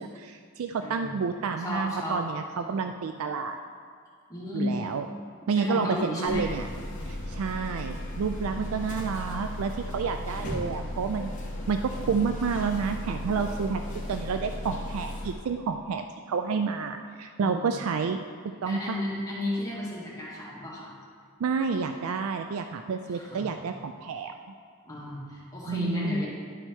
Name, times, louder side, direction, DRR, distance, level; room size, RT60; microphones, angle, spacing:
voice 1, 0.0-3.6 4.5-5.1 5.5-6.6 7.1-11.3 11.7-18.2 18.6-19.0 21.4-24.3 25.7-26.2, right 5 dB, 90° right, 6 dB, 0.4 m, -30 dB
voice 2, 0.8-1.1 1.6-2.2 2.5-2.9 4.3-4.8 5.6-6.5 17.4-17.8 18.7-20.9 23.1-23.5 24.9-26.3, left 1 dB, 15° left, -7 dB, 1.8 m, -33 dB
sound 1, 6.3-15.3, left 1 dB, 40° left, 1.2 m, -35 dB
11.0 x 4.5 x 4.4 m, 2.1 s
head